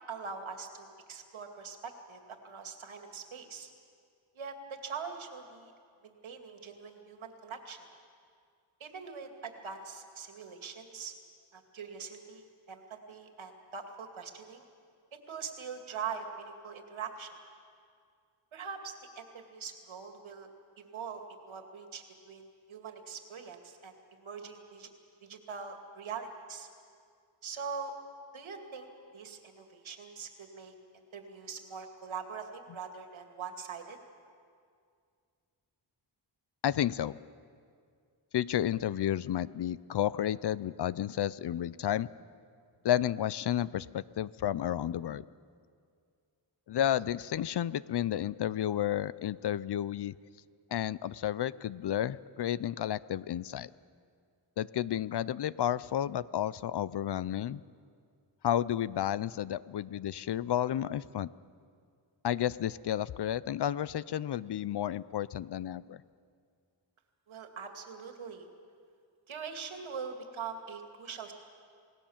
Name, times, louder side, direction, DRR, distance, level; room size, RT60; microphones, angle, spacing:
voice 1, 0.1-3.7 4.3-4.6 4.8-5.7 6.0-7.9 8.8-11.1 11.5-14.6 15.3-17.3 18.5-20.5 20.8-24.9 25.2-26.7 27.4-27.9 28.3-28.9 29.1-30.7 31.1-34.0 67.3-68.5 69.3-71.3, right 6 dB, 80° right, 4 dB, 2.4 m, -43 dB
voice 2, 36.6-37.2 38.3-42.1 42.8-45.3 46.7-50.1 50.7-53.7 54.6-57.6 58.4-61.3 62.2-66.0, left 11 dB, 60° left, 18 dB, 0.5 m, -31 dB
28.0 x 18.5 x 7.3 m, 2.2 s
wide cardioid pair, 145°, 47 cm